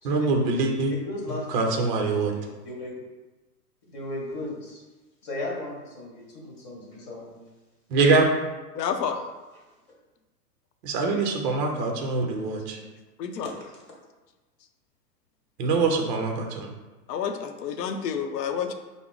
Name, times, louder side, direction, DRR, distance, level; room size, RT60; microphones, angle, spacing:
voice 1, 0.0-0.9 1.5-2.3 7.9-8.3 10.8-12.8 15.6-16.7, right 3 dB, 30° right, 2 dB, 0.5 m, -24 dB
voice 2, 1.0-1.9 2.3-2.9 3.9-4.8 5.2-7.4 9.5-9.6, left 2 dB, 35° left, -3 dB, 1.3 m, -36 dB
voice 3, 8.7-9.2 13.2-13.5 17.1-18.7, left 7 dB, 80° left, 7 dB, 0.7 m, -29 dB
4.7 x 2.0 x 3.8 m, 1.2 s
hypercardioid pair, 135°, 48 cm